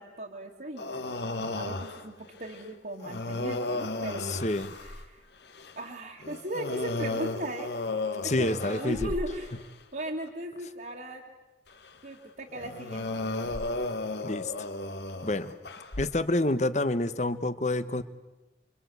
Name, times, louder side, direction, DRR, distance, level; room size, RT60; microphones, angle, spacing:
voice 1, 0.0-5.2 5.8-7.7 8.4-9.6 9.9-11.2 12.0-13.2, right 1 dB, 55° right, -4 dB, 2.7 m, -37 dB
sound 1, 0.8-2.1 2.4-2.6 3.0-5.1 5.5-5.7 6.2-9.7 10.3-10.4 11.8-11.9 12.6-16.2, left 2 dB, 80° left, 1.8 m, -34 dB
voice 2, 4.2-4.7 8.2-9.1 14.2-14.5 15.2-15.5 16.0-18.0, left 2 dB, 40° left, 12 dB, 1.2 m, -28 dB
30.0 x 24.0 x 8.2 m, 1.0 s
head